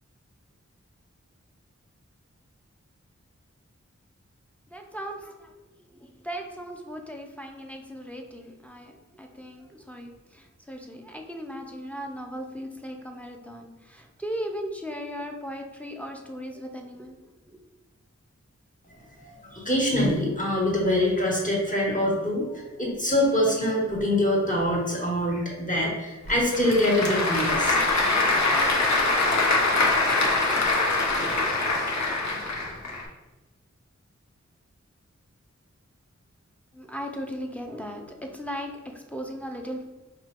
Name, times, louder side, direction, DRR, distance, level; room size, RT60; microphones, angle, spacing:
voice 1, 4.7-5.5 5.9-17.2 36.7-39.9, equal, 5° left, 2 dB, 0.5 m, -37 dB
voice 2, 19.2-28.0, left 1 dB, 25° left, -4 dB, 1.4 m, -24 dB
Applause / Crowd, 26.3-33.0, left 2 dB, 70° left, 0.7 m, -23 dB
4.6 x 3.0 x 2.5 m, 1.1 s
wide cardioid pair, 40°, 29 cm